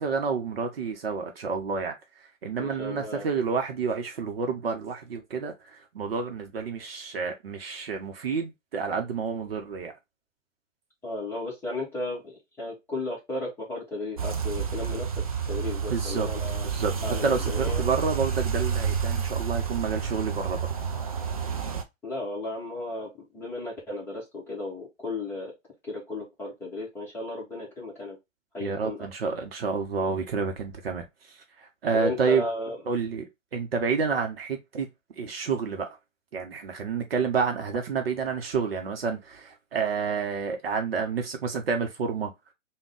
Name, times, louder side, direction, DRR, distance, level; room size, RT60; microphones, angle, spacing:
voice 1, 0.0-9.9 15.9-16.3 16.6-16.9 17.2-20.8 28.6-32.4 32.9-34.9 35.2-36.0 36.3-42.3, right 5 dB, 50° right, 0.8 m, -29 dB
voice 2, 2.6-3.3 11.0-15.1 15.5-16.7 17.0-17.8 22.0-25.5 25.9-28.2 28.5-29.1 31.9-32.8, left 2 dB, 5° left, 1.0 m, -34 dB
sound 1, 14.2-21.8, right 7 dB, 30° right, 0.4 m, -29 dB
3.5 x 2.3 x 3.6 m
figure-of-eight pair, 130°, 39 cm